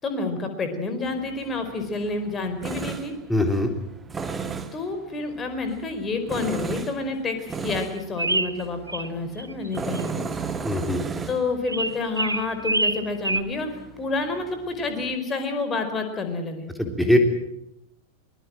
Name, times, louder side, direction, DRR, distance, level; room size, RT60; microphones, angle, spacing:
voice 1, 0.0-3.1 4.7-7.4 7.6-10.2 11.3-13.7 14.0-16.7, left 3 dB, 20° left, 7 dB, 4.7 m, -29 dB
Tools, 1.1-15.2, right 5 dB, 15° right, 1.8 m, -36 dB
voice 2, 3.3-3.7 10.6-11.0 16.8-17.2, left 1 dB, ahead, 4 dB, 3.5 m, -21 dB
sound 1, 8.2-9.1 9.4-10.0 11.7-13.4, right 2 dB, 80° right, 0.9 m, -26 dB
23.5 x 21.5 x 7.7 m, 0.80 s
figure-of-eight pair, 90°, 0 cm